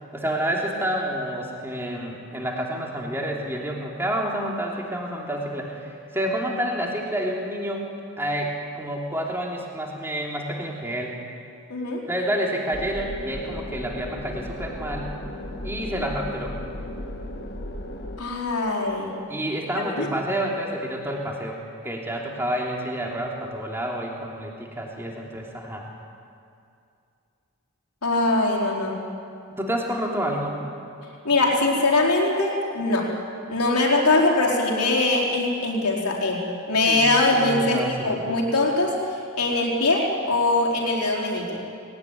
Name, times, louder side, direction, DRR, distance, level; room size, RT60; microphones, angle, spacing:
voice 1, 0.1-7.9 8.2-11.1 12.1-15.1 15.6-16.5 19.3-21.6 21.8-25.9 29.6-30.6 36.9-38.2, right 1 dB, 10° right, -1 dB, 3.0 m, -29 dB
voice 2, 11.7-12.0 18.2-19.1 20.0-20.1 28.0-29.0 31.2-33.1 33.5-38.9 39.4-41.6, left 2 dB, 90° left, -2 dB, 4.4 m, -22 dB
sound 1, 12.7-18.2, left 1 dB, 45° left, 1.6 m, -35 dB
20.0 x 18.5 x 9.6 m, 2.5 s
head